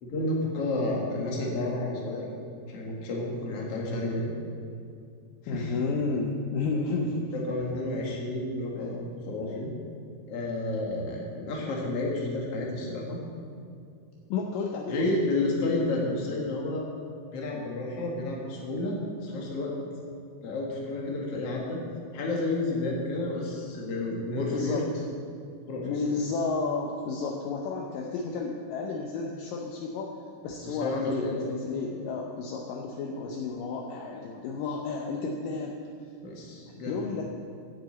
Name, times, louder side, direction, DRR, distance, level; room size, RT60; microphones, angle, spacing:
voice 1, 0.0-2.3 2.7-4.3 5.4-5.7 7.3-9.0 9.3-9.7 10.3-13.2 14.9-16.8 17.3-19.7 20.4-21.8 22.1-24.8 25.7-25.9 30.6-31.4 36.2-37.0, left 2 dB, 50° left, -2 dB, 2.1 m, -31 dB
voice 2, 5.5-7.5 8.8-8.9 14.3-15.0 24.5-25.0 25.8-30.1 30.4-35.8 36.8-37.2, left 4 dB, 80° left, 0 dB, 2.0 m, -32 dB
7.9 x 7.7 x 8.1 m, 2.5 s
omnidirectional pair, 4.7 m